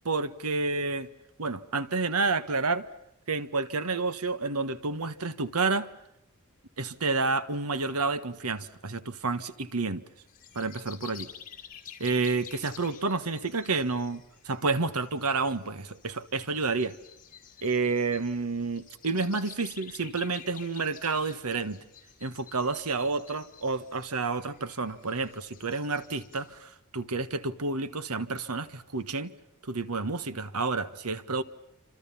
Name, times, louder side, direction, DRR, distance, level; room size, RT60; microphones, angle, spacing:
voice 1, 0.0-1.1 1.4-2.9 3.3-5.9 6.8-10.0 10.5-11.3 12.0-17.0 17.6-21.8 22.2-29.3 29.6-31.4, right 3 dB, 85° right, 1.5 m, -30 dB
sound 1, 10.3-26.6, left 9 dB, 40° left, 4.4 m, -50 dB
29.0 x 26.5 x 5.7 m
head